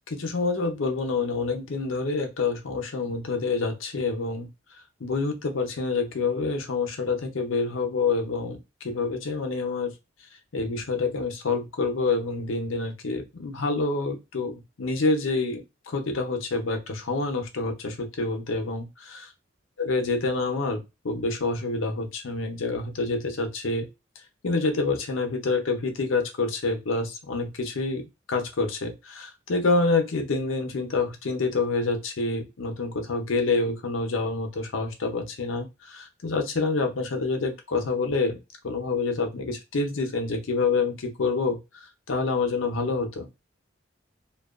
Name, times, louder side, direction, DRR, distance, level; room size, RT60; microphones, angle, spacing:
voice 1, 0.1-4.5 5.0-9.9 10.5-18.9 19.8-23.9 24.4-28.0 28.3-38.4 38.6-41.6 42.1-43.3, left 3 dB, 85° left, 5 dB, 0.6 m, -27 dB
2.6 x 2.2 x 2.4 m, 0.25 s
head